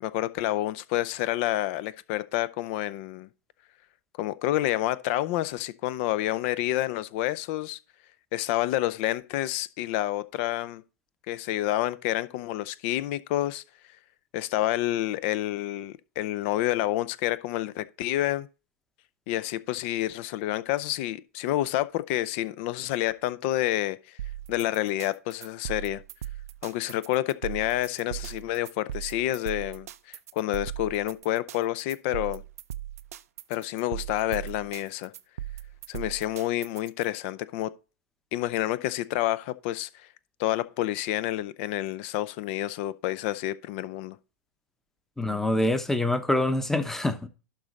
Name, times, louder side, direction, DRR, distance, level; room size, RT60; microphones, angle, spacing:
voice 1, 0.0-3.3 4.2-7.8 8.3-10.8 11.3-13.6 14.3-18.5 19.3-24.2 24.5-26.0 26.6-32.4 33.5-35.1 35.9-37.7 38.3-39.9 40.4-44.2, left 14 dB, 45° left, 0.5 m, -29 dB
sound 1, 24.2-37.0, right 12 dB, 65° right, 0.5 m, -38 dB
voice 2, 45.2-47.3, left 1 dB, 5° left, 0.9 m, -25 dB
11.5 x 3.9 x 4.1 m
hypercardioid pair, 105°, 9 cm